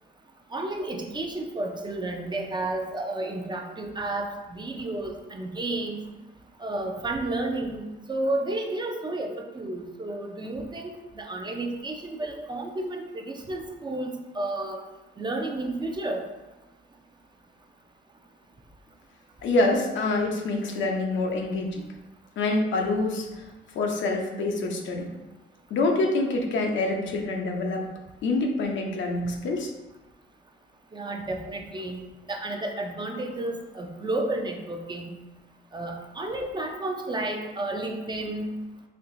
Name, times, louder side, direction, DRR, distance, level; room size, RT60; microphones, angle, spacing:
voice 1, 0.5-6.0 6.6-14.8 15.2-16.2 30.9-32.0 32.3-35.1 35.7-38.5, right 2 dB, 25° right, 3 dB, 0.5 m, -31 dB
voice 2, 19.4-21.8 22.4-23.5 23.7-25.1 25.7-27.9 28.2-29.7, left 2 dB, 70° left, 2 dB, 0.6 m, -26 dB
4.4 x 2.9 x 2.6 m, 1.1 s
cardioid pair, 90°, 20 cm